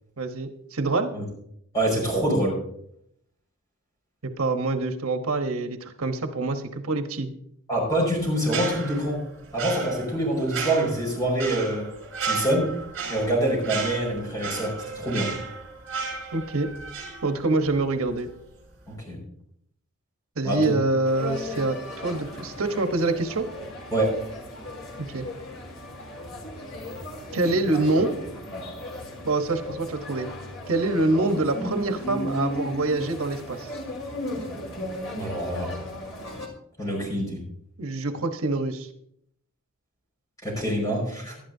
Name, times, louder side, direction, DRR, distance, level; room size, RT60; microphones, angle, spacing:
voice 1, 0.2-1.1 4.2-7.3 16.3-16.7 17.2-18.3 20.4-21.8 22.0-23.5 25.1-25.2 27.3-28.1 29.2-30.3 30.7-33.7 37.8-38.9, right 2 dB, 80° right, 7 dB, 1.1 m, -25 dB
voice 2, 1.7-2.6 7.7-9.2 9.5-11.9 12.2-12.7 13.1-15.3 18.9-19.2 20.4-20.8 23.9-24.2 35.2-35.7 36.8-37.4 40.4-41.4, right 1 dB, 15° left, -1 dB, 5.6 m, -25 dB
sound 1, 8.4-17.8 18.1-18.3, right 5 dB, 60° right, 5.9 m, -34 dB
sound 2, 21.0-36.5, left 1 dB, 80° left, 3.2 m, -36 dB
18.0 x 11.5 x 2.7 m, 0.69 s
head